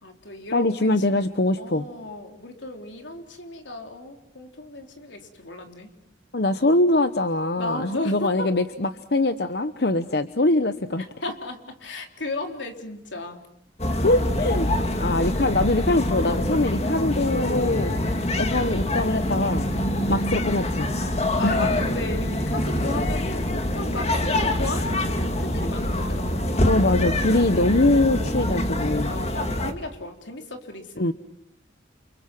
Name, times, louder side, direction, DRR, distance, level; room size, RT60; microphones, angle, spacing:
voice 1, 0.0-1.3 1.6-5.9 7.6-8.5 11.2-13.4 21.1-26.4 29.0-31.1, left 2 dB, 85° left, 4 dB, 3.8 m, -35 dB
voice 2, 0.5-1.9 6.3-11.0 14.0-18.0 18.4-19.7 20.1-20.9 21.4-21.7 26.7-29.1 31.0-31.1, left 2 dB, 60° left, 10 dB, 0.9 m, -23 dB
sound 1, 13.8-29.7, left 1 dB, 35° left, 2.2 m, -25 dB
29.5 x 28.5 x 6.1 m, 0.78 s
head